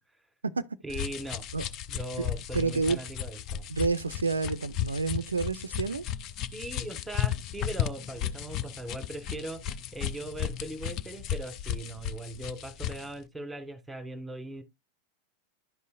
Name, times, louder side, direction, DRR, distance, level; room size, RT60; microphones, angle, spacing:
voice 1, 0.8-1.4 1.9-3.7 6.5-14.6, right 1 dB, 5° right, 1.6 m, -39 dB
sound 1, 0.9-13.1, left 10 dB, 35° left, 0.5 m, -34 dB
voice 2, 2.5-3.0 3.7-6.0, right 4 dB, 75° right, 0.4 m, -29 dB
11.0 x 5.4 x 2.4 m
figure-of-eight pair, 90°, 0 cm